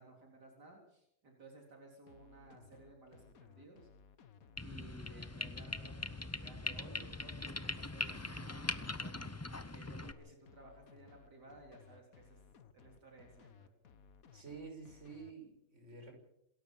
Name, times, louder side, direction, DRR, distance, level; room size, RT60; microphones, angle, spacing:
voice 1, 0.0-3.9 4.6-9.2 9.7-12.4 12.7-13.7, right 2 dB, 75° right, 0 dB, 4.3 m, -57 dB
sound 1, 2.1-15.3, left 6 dB, 60° left, 1.5 m, -60 dB
sound 2, 4.6-10.1, left 2 dB, 20° left, 0.4 m, -41 dB
voice 2, 14.3-16.1, right 5 dB, 45° right, 3 dB, 6.2 m, -50 dB
27.0 x 13.5 x 7.3 m, 0.78 s
omnidirectional pair, 1.8 m